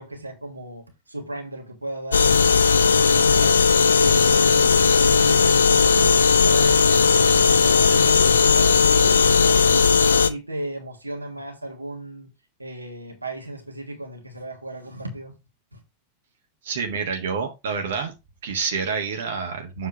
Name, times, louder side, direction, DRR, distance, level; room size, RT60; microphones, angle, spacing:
voice 1, 0.0-2.6 2.9-12.3 12.6-15.4 15.7-15.8, right 1 dB, 85° right, 1.4 m, -35 dB
sound 1, 2.1-10.3, left 5 dB, 70° left, 0.5 m, -17 dB
voice 2, 16.6-18.1 18.4-19.9, right 5 dB, 60° right, 1.3 m, -28 dB
7.0 x 3.6 x 4.6 m
figure-of-eight pair, 90°, 0 cm